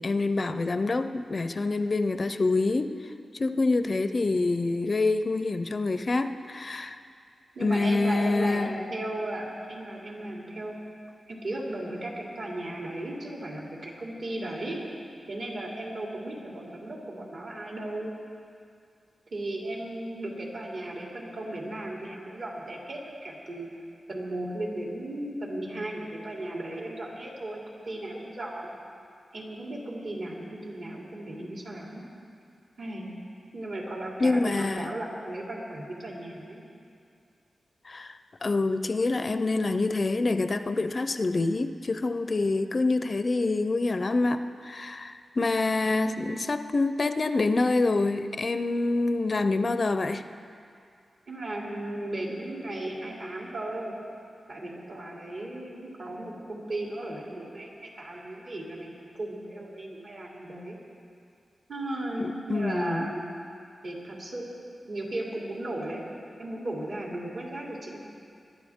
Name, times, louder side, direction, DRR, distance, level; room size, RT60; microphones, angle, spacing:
voice 1, 0.0-2.9 3.3-7.0 7.6-8.7 34.2-34.9 37.9-50.2 62.2-63.1, left 3 dB, 40° left, 10 dB, 0.5 m, -26 dB
voice 2, 7.5-10.8 11.3-14.8 15.3-18.1 19.3-23.7 24.1-28.8 29.3-32.0 32.8-33.1 33.5-36.6 51.3-54.0 54.5-58.9 59.1-60.8 61.7-63.3 63.8-64.5 64.8-66.0 66.4-68.0, right 1 dB, 65° right, -3 dB, 3.0 m, -36 dB
21.5 x 12.0 x 3.6 m, 2.4 s
wide cardioid pair, 100°, 0 cm